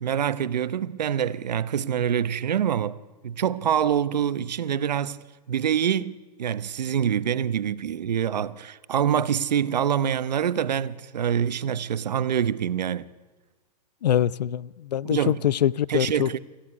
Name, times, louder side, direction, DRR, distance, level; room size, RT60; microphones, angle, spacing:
voice 1, 0.0-3.0 3.2-5.2 5.5-13.1 15.0-15.4 15.9-16.4, right 9 dB, 80° right, 1.1 m, -25 dB
voice 2, 14.0-16.4, left 10 dB, 80° left, 0.7 m, -24 dB
26.5 x 14.5 x 9.8 m
hypercardioid pair, 145°, 21 cm